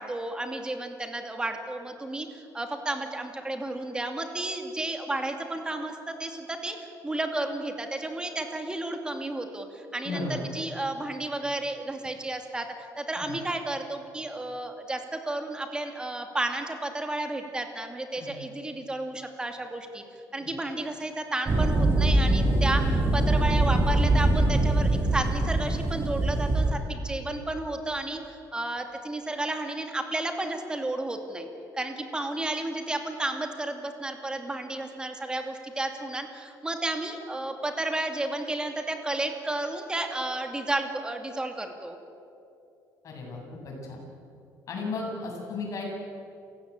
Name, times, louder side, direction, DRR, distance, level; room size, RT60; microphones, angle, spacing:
voice 1, 0.0-20.0 20.3-31.5 31.7-42.0, right 2 dB, 10° right, 5 dB, 2.5 m, -32 dB
voice 2, 10.0-10.4 13.2-13.4 18.2-18.4 20.4-20.5 43.0-44.0 44.7-45.8, left 3 dB, 50° left, -1 dB, 7.9 m, -35 dB
sound 1, 21.5-26.7, right 2 dB, 35° right, 4.5 m, -23 dB
28.5 x 16.0 x 8.8 m, 2.6 s
cardioid pair, 135°, 7 cm